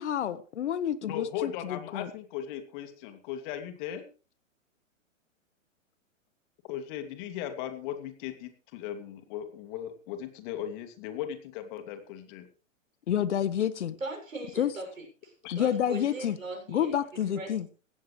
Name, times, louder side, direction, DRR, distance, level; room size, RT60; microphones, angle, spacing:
voice 1, 0.0-2.1 13.1-13.9 14.6-14.7 15.5-16.4 16.7-17.7, left 10 dB, 60° left, 15 dB, 1.4 m, -29 dB
voice 2, 1.1-4.0 6.7-12.5 15.4-15.6, left 10 dB, 40° left, 7 dB, 2.7 m, -37 dB
voice 3, 14.0-17.7, right 2 dB, 80° right, 3 dB, 7.0 m, -40 dB
16.5 x 15.0 x 3.3 m, 0.37 s
figure-of-eight pair, 120°, 40 cm